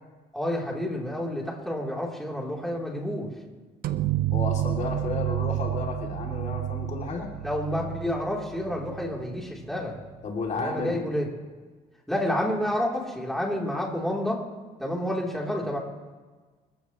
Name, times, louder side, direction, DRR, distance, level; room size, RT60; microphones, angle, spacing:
voice 1, 0.3-3.3 7.4-10.0 10.5-11.3 12.1-14.4 14.8-15.8, left 1 dB, ahead, -3 dB, 3.3 m, -29 dB
sound 1, 3.8-9.4, right 13 dB, 60° right, 0.8 m, -30 dB
voice 2, 4.3-7.3 10.2-11.0, left 4 dB, 45° left, 0 dB, 2.8 m, -32 dB
26.0 x 14.5 x 3.1 m, 1.4 s
cardioid pair, 110°, 17 cm